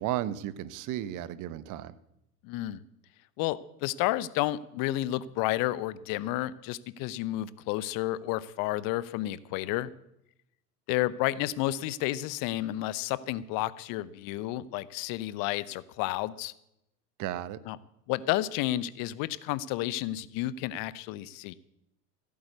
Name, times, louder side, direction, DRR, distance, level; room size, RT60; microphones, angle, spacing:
voice 1, 0.0-1.9 17.2-17.6, right 12 dB, 40° right, 16 dB, 1.0 m, -34 dB
voice 2, 2.4-2.8 3.4-9.9 10.9-16.5 17.7-17.8 18.1-21.5, left 15 dB, 45° left, 18 dB, 0.8 m, -31 dB
15.5 x 8.8 x 8.0 m, 0.81 s
figure-of-eight pair, 80°, 49 cm